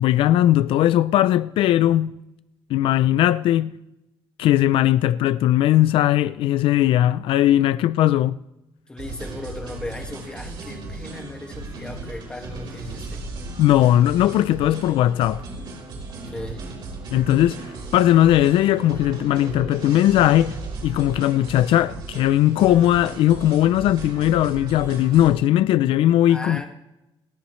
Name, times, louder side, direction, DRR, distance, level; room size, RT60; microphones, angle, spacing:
voice 1, 0.0-2.2 2.7-3.8 4.4-8.4 13.6-15.4 17.1-26.6, left 13 dB, 75° left, 0.4 m, -18 dB
voice 2, 8.9-13.2 16.3-16.7 26.3-26.7, left 2 dB, 10° left, 1.8 m, -36 dB
sound 1, 9.0-25.3, right 3 dB, 55° right, 4.4 m, -36 dB
28.5 x 10.0 x 3.2 m
cardioid pair, 165°, 9 cm